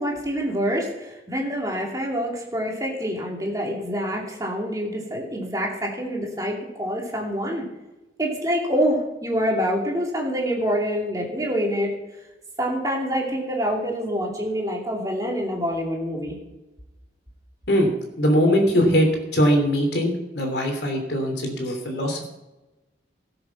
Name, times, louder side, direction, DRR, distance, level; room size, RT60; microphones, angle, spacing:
voice 1, 0.0-7.6 8.2-11.9 12.6-16.3, equal, 20° right, -1 dB, 2.7 m, -26 dB
voice 2, 18.2-19.1 19.3-22.3, equal, 65° left, 3 dB, 3.0 m, -21 dB
18.0 x 7.1 x 5.8 m, 1.0 s
head